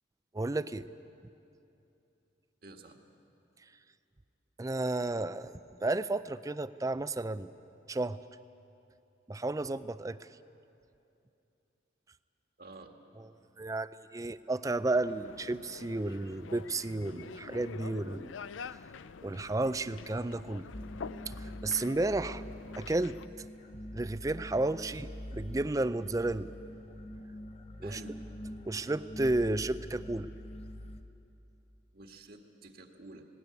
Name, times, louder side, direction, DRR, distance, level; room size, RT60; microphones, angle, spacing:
voice 1, 0.3-0.9 4.6-7.5 7.9-8.2 9.3-10.2 13.6-18.3 19.2-20.7 21.3-22.4 22.8-23.5 23.9-26.5 27.8-28.0 28.6-30.3, right 2 dB, 15° right, 14 dB, 0.4 m, -32 dB
voice 2, 2.6-3.0 12.6-12.9 27.8-28.2 31.9-33.3, right 2 dB, 50° right, 3 dB, 1.7 m, -50 dB
sound 1, 14.9-23.3, left 5 dB, 85° left, 0.5 m, -47 dB
sound 2, 20.7-31.0, equal, 35° left, 0.9 m, -45 dB
19.0 x 18.0 x 9.5 m, 2.8 s
head